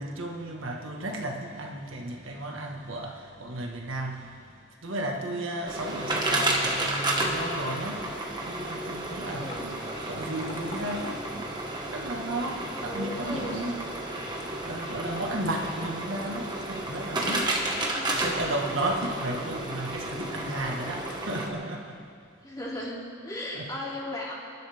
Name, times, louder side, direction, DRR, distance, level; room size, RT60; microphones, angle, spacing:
voice 1, 0.0-9.7 10.0-11.4 11.9-13.8 14.6-22.0 23.5-23.7, right 1 dB, 75° right, 1 dB, 1.7 m, -34 dB
sound 1, 5.7-21.5, right 2 dB, 20° right, 1.5 m, -32 dB
voice 2, 5.8-6.5 9.2-9.7 12.8-13.6 17.8-18.1 22.4-24.3, left 1 dB, 20° left, -5 dB, 2.9 m, -37 dB
sound 2, 9.3-21.6, left 3 dB, 35° left, 1.1 m, -46 dB
28.5 x 11.5 x 3.6 m, 2.2 s
head